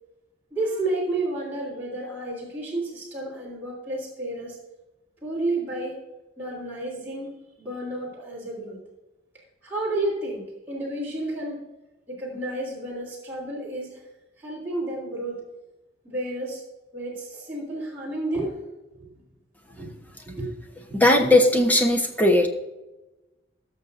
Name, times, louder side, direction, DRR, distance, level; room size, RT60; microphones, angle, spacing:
voice 1, 0.5-4.6 5.2-6.0 6.4-8.8 9.6-11.6 12.1-14.0 14.4-15.4 16.0-16.6 16.9-18.5 19.0-19.1 19.7-19.9 20.2-20.6 20.9-21.4, right 2 dB, 10° right, -7 dB, 3.3 m, -31 dB
voice 2, 20.9-22.5, left 1 dB, 10° left, 2 dB, 1.1 m, -18 dB
19.5 x 6.5 x 2.6 m, 1.0 s
head